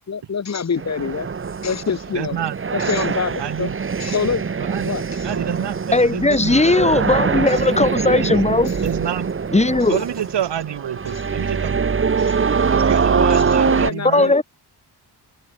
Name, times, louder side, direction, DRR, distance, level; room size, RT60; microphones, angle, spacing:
voice 1, 0.1-1.3 1.6-2.4 2.7-3.7 4.0-4.4 4.8-5.3 6.3-6.5 7.5-7.6 8.7-8.8 9.8-9.9 11.1-11.3 12.2-12.4 13.3-14.4, left 6 dB, 40° left, 4.0 m, -26 dB
sound 1, 0.8-13.9, right 5 dB, 30° right, 1.6 m, -23 dB
voice 2, 2.1-2.6 3.4-3.8 4.6-6.9 8.2-8.3 8.8-9.3 9.9-12.2 12.7-14.3, right 10 dB, 90° right, 3.8 m, -28 dB
voice 3, 5.9-8.7 9.5-10.0 14.1-14.4, left 2 dB, 15° left, 4.8 m, -17 dB
wide cardioid pair, 160°, 40 cm